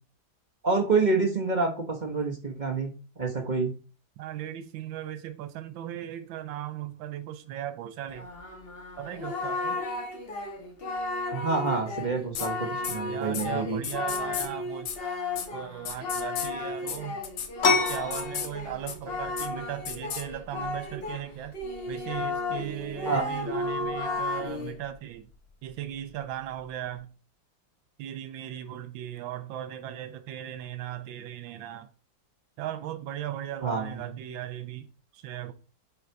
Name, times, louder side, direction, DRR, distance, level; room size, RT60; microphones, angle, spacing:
voice 1, 0.6-2.9 3.2-3.8 11.3-13.8 23.1-23.2 33.6-34.2, right 4 dB, 35° right, 0.8 m, -27 dB
voice 2, 4.2-8.3 9.0-9.8 13.1-15.2 15.5-17.2 17.7-21.6 21.9-25.3 25.6-27.1 28.0-31.9 32.6-35.5, right 11 dB, 80° right, 1.5 m, -37 dB
Singing, 8.1-21.3 21.5-24.8, left 2 dB, 35° left, 1.2 m, -34 dB
sound 1, 12.3-12.5 12.8-13.0 13.3-13.4 13.8-14.5 14.8-15.0 15.3-15.5 15.8-16.5 16.9-17.0 17.2-17.5 17.9-18.5 18.9-19.0 19.4-19.5 19.8-20.2, left 7 dB, 75° left, 1.7 m, -33 dB
sound 2, 17.6-27.0, left 4 dB, 50° left, 1.8 m, -34 dB
8.6 x 4.0 x 4.5 m
omnidirectional pair, 2.1 m